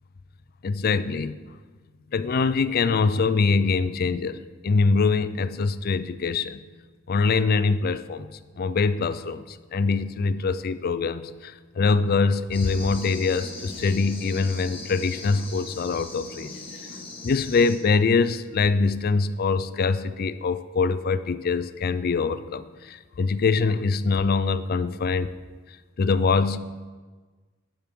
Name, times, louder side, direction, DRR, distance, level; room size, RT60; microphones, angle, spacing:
voice 1, 0.6-1.4 2.1-6.6 7.1-16.6 17.2-25.3 26.0-26.6, left 4 dB, 50° left, 14 dB, 0.4 m, -24 dB
sound 1, 12.5-17.8, left 2 dB, 25° left, 1.6 m, -39 dB
10.5 x 10.5 x 3.7 m, 1.4 s
head